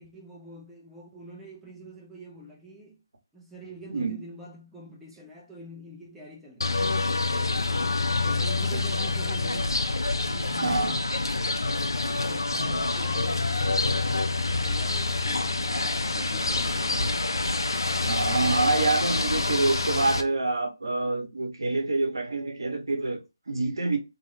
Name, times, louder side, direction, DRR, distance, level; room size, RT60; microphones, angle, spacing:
voice 1, 0.0-3.0 3.3-7.9 8.2-9.9 10.2-11.1 11.7-17.4, equal, 5° right, 0.5 m, -46 dB
sound 1, 6.6-20.2, left 3 dB, 75° left, 0.5 m, -27 dB
voice 2, 10.6-10.9 11.6-12.4 18.0-24.0, right 3 dB, 70° right, 0.8 m, -27 dB
2.6 x 2.3 x 3.1 m
figure-of-eight pair, 150°, 2 cm